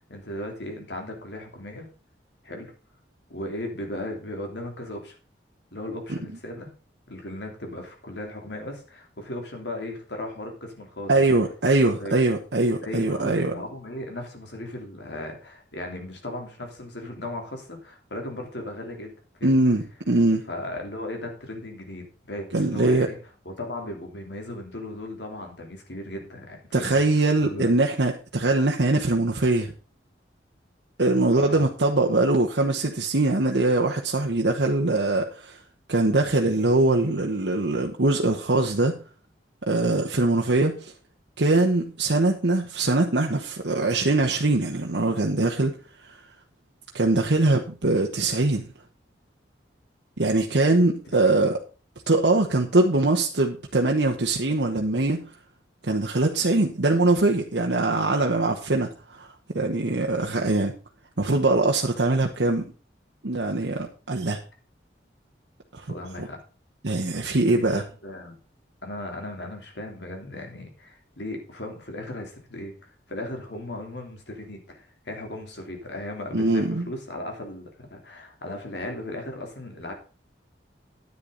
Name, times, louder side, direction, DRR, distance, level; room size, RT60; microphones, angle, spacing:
voice 1, 0.0-1.9 2.4-2.7 3.3-5.1 5.7-6.7 7.1-11.3 11.9-12.2 12.8-19.6 20.5-23.2 23.4-27.9 31.3-31.6 51.2-51.4 65.9-66.4 67.7-68.4 68.8-79.9, left 1 dB, 75° left, 3 dB, 3.3 m, -37 dB
voice 2, 11.1-13.6 19.4-20.5 22.5-23.1 26.7-29.7 31.0-35.6 35.9-39.0 39.6-40.9 41.4-45.8 46.0-46.2 46.9-48.7 50.2-51.6 52.1-55.3 55.8-60.7 61.2-62.7 63.2-64.4 65.7-65.9 66.2-66.3 66.8-67.8 76.3-76.8, right 2 dB, 75° right, 1 dB, 1.1 m, -22 dB
10.5 x 9.4 x 3.9 m, 0.36 s
head